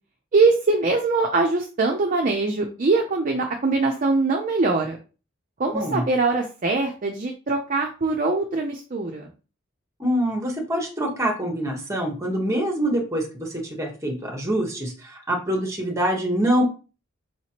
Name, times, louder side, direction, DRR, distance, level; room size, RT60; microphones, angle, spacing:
voice 1, 0.3-5.0 5.6-9.3, right 3 dB, 40° right, 3 dB, 0.5 m, -22 dB
voice 2, 5.7-6.0 10.0-16.6, right 1 dB, 15° right, 1 dB, 1.1 m, -25 dB
4.8 x 3.0 x 2.9 m, 0.34 s
head